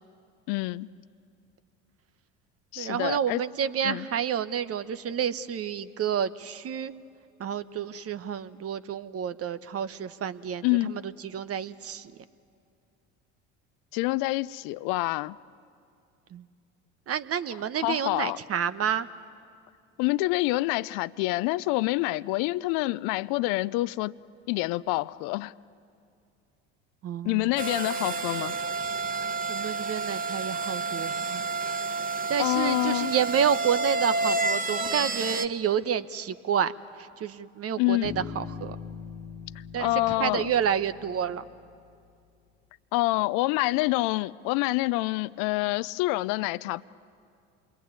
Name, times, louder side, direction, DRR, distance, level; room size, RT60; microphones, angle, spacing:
voice 1, 0.5-0.9 2.7-3.4 3.8-4.1 10.6-11.0 13.9-15.4 17.8-18.4 20.0-24.1 24.5-25.5 27.2-28.6 32.4-33.1 37.8-38.1 39.8-40.5 42.9-46.8, left 20 dB, 65° left, 0.6 m, -27 dB
voice 2, 2.8-6.9 7.4-12.1 16.3-16.4 17.1-19.1 27.0-27.5 29.5-31.4 31.9-32.0 32.3-36.7 37.0-38.8 39.7-39.9 40.2-41.4, right 8 dB, 40° right, 1.1 m, -29 dB
sound 1, 27.6-35.5, right 3 dB, 25° right, 1.3 m, -30 dB
Bass guitar, 38.0-41.7, left 7 dB, 80° left, 1.8 m, -42 dB
27.5 x 22.5 x 9.7 m
hypercardioid pair, 75°, 36 cm